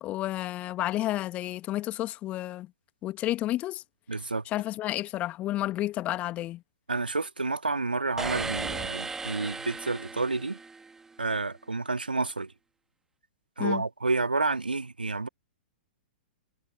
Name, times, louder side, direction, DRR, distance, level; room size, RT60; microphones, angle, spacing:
voice 1, 0.0-2.7 3.0-3.8 4.5-6.6 13.6-13.8, left 15 dB, 25° left, 1.7 m, -31 dB
voice 2, 4.1-4.4 6.9-10.6 11.2-12.5 13.6-15.3, right 3 dB, 80° right, 2.0 m, -29 dB
sound 1, 8.2-11.0, right 4 dB, 10° right, 2.8 m, -36 dB
figure-of-eight pair, 110°, 5 cm